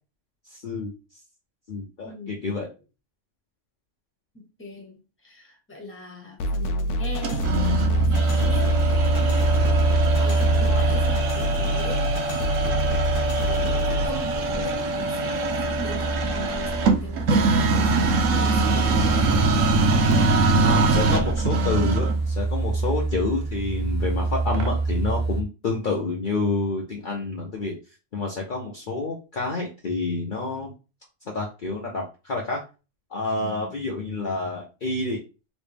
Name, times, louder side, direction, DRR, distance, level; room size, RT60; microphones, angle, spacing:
voice 1, 0.5-0.9 1.7-2.7 20.6-27.8 28.1-30.7 31.3-32.6 33.1-35.2, left 3 dB, 45° left, -2 dB, 0.8 m, -28 dB
voice 2, 2.0-2.7 4.3-7.6 7.9-8.7 9.6-12.9 13.4-18.0 18.3-19.5 33.4-33.7, equal, 10° left, 1 dB, 1.0 m, -39 dB
sound 1, 6.4-14.0, equal, 75° left, 0.9 m, -27 dB
sound 2, 7.2-22.2, right 3 dB, 90° right, 1.1 m, -24 dB
sound 3, 7.4-25.4, right 3 dB, 60° right, 0.8 m, -26 dB
3.1 x 3.0 x 3.4 m, 0.31 s
omnidirectional pair, 1.3 m